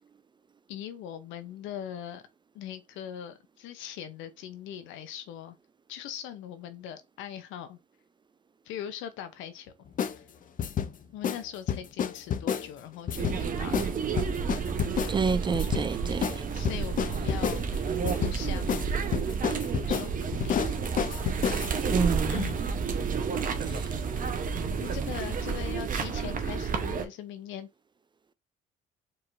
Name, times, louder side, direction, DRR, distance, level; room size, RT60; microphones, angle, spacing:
voice 1, 0.7-2.2 2.5-5.6 5.9-7.8 8.7-9.7 10.2-10.3 11.1-13.7 16.5-19.0 19.7-20.6 22.3-22.6 23.6-23.9 24.8-27.7, left 10 dB, 75° left, 0.7 m, -41 dB
sound 1, 10.0-10.2 10.6-10.9 11.2-11.4 11.7-12.7 13.1-13.4 13.7-13.9 14.2-15.1 15.5-15.9 16.2-16.4 16.6-17.6 18.1-18.4 18.7-18.8 19.1-21.8, left 8 dB, 45° left, 0.5 m, -29 dB
sound 2, 13.1-27.0, right 6 dB, 45° right, 0.8 m, -30 dB
voice 2, 15.1-16.3 21.9-22.4 23.8-23.9, right 5 dB, 25° right, 0.4 m, -28 dB
4.6 x 3.1 x 2.5 m
supercardioid pair, 70°, 20 cm